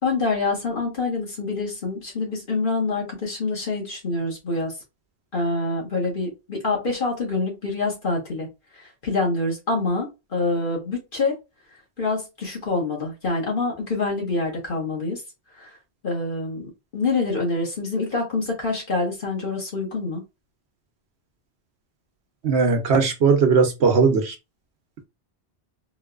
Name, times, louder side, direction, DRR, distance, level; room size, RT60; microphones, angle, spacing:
voice 1, 0.0-4.7 5.3-8.5 9.0-11.4 12.0-15.2 15.6-15.7 16.0-20.2, left 3 dB, 50° left, 1.6 m, -26 dB
voice 2, 22.4-24.4, right 5 dB, 70° right, 1.0 m, -18 dB
3.8 x 2.8 x 2.4 m
omnidirectional pair, 1.2 m